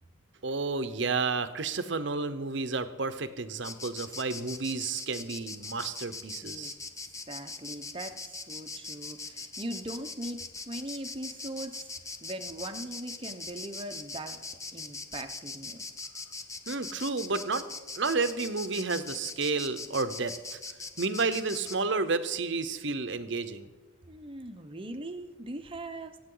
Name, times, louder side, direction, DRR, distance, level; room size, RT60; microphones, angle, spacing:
voice 1, 0.4-6.7 16.7-17.6 17.9-20.6 21.0-23.7, right 4 dB, 60° right, 11 dB, 0.9 m, -31 dB
Insect, 3.6-21.8, left 3 dB, 15° left, 0.6 m, -41 dB
voice 2, 6.4-6.7 7.3-11.9 12.2-14.4 14.7-15.8 24.1-26.2, right 1 dB, 25° right, 6 dB, 0.9 m, -40 dB
24.0 x 8.7 x 3.9 m, 1.3 s
head